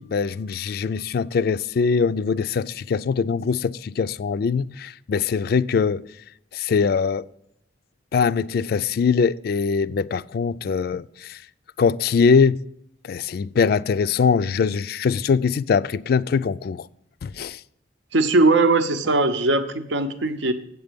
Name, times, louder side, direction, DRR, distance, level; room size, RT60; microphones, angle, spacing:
voice 1, 0.0-6.0 6.5-7.3 8.1-11.4 11.8-12.6 13.0-16.9 17.2-17.6, left 5 dB, 55° left, 0.3 m, -22 dB
voice 2, 18.1-20.5, right 2 dB, 75° right, 0.8 m, -19 dB
8.1 x 8.1 x 5.1 m
head